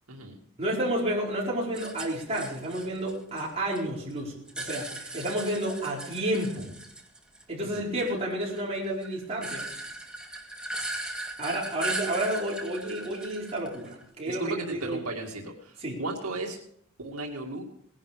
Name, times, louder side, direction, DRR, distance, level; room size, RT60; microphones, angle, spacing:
voice 1, 0.6-6.7 7.5-9.7 11.4-15.0 15.8-16.0, right 1 dB, 30° right, -4 dB, 4.5 m, -31 dB
sound 1, 1.7-3.8 4.1-7.4 7.7-14.1, right 2 dB, 5° right, 1.8 m, -38 dB
voice 2, 7.6-7.9 14.2-16.6 17.0-17.6, right 2 dB, 85° right, 1 dB, 2.3 m, -35 dB
19.0 x 11.0 x 5.0 m, 0.68 s
head